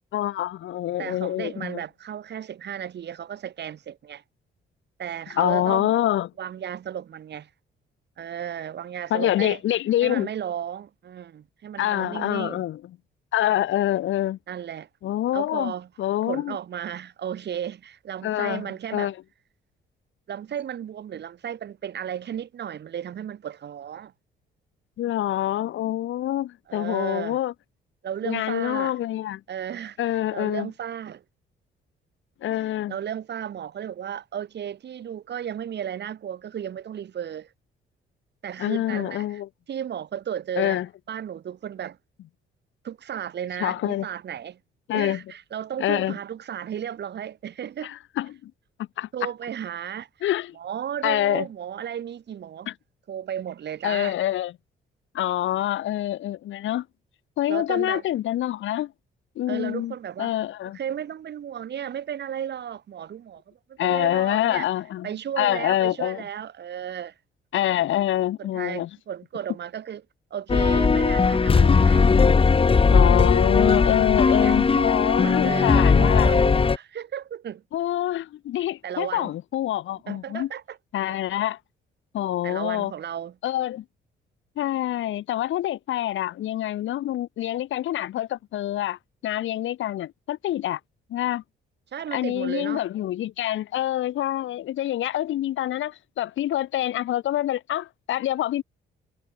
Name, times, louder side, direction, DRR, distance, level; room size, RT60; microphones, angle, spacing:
voice 1, 0.0-1.8 5.4-6.3 9.1-10.3 11.8-12.8 13.3-14.4 15.0-15.7 16.0-16.6 18.2-19.1 25.0-27.5 28.2-29.4 30.0-30.7 32.4-32.9 38.6-39.5 40.6-40.9 43.6-44.1 44.9-45.2 45.8-46.1 47.8-48.5 49.0-49.1 50.2-50.6 51.0-51.5 52.7-52.8 53.8-54.5 55.1-56.9 57.4-58.9 59.4-60.8 63.8-65.1 65.4-66.2 67.5-68.9 71.5-71.9 72.8-76.3 77.7-80.5 80.9-81.6 82.1-82.9 83.4-83.8 84.6-90.8 91.1-91.4 92.1-98.6, left 13 dB, 75° left, 2.0 m, -26 dB
voice 2, 1.0-4.2 5.0-5.9 6.4-7.5 8.2-9.6 10.0-12.6 14.5-14.9 15.3-15.9 16.3-19.1 20.3-24.1 26.7-27.4 28.0-28.9 29.5-30.0 30.3-31.2 32.9-37.5 38.4-39.4 39.7-40.8 41.1-42.0 42.8-44.6 44.9-47.9 49.1-50.1 50.6-52.7 53.1-54.2 57.5-58.0 59.5-60.3 60.7-64.7 65.0-67.1 68.5-70.0 70.3-72.3 74.3-74.6 75.1-77.6 78.8-79.3 80.1-80.8 81.1-81.2 82.4-83.3 91.9-92.8, right 9 dB, 60° right, 3.1 m, -34 dB
sound 1, 70.5-76.8, left 5 dB, 30° left, 1.2 m, -18 dB
cardioid pair, 90°, 20 cm